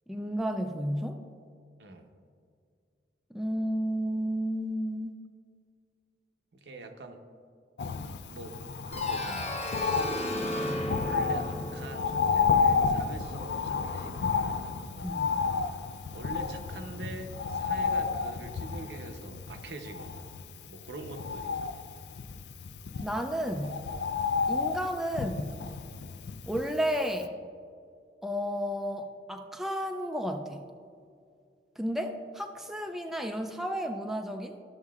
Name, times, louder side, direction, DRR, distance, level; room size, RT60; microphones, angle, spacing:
voice 1, 0.1-1.2 3.3-5.2 10.4-10.9 15.0-15.3 23.0-23.8 24.5-25.4 26.5-27.4 28.2-30.6 31.8-34.6, equal, ahead, 4 dB, 0.3 m, -32 dB
voice 2, 6.5-7.2 8.2-8.6 8.9-9.6 11.0-14.7 16.1-20.3 20.6-21.8, right 2 dB, 70° right, 5 dB, 0.7 m, -44 dB
Bird, 7.8-26.9 27.2-27.3, left 5 dB, 70° left, 0.4 m, -31 dB
sound 1, 8.9-13.6, left 1 dB, 40° left, 0.9 m, -35 dB
13.0 x 6.4 x 2.3 m, 2.3 s
head